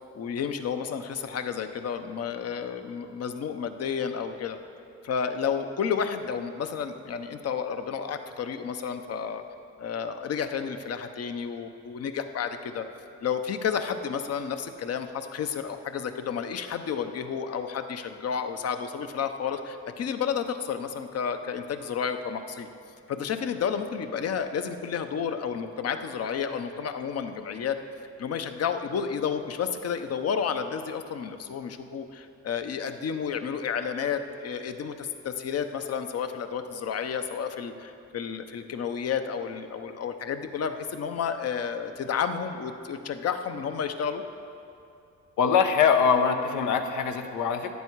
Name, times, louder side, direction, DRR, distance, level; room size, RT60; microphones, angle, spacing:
voice 1, 0.0-4.6 5.0-9.4 9.8-12.8 13.2-22.7 23.1-27.8 28.2-44.2, left 7 dB, 55° left, 8 dB, 0.8 m, -31 dB
voice 2, 45.4-47.7, left 6 dB, 85° left, 6 dB, 1.0 m, -23 dB
13.5 x 9.5 x 4.7 m, 2.6 s
cardioid pair, 90°, 30 cm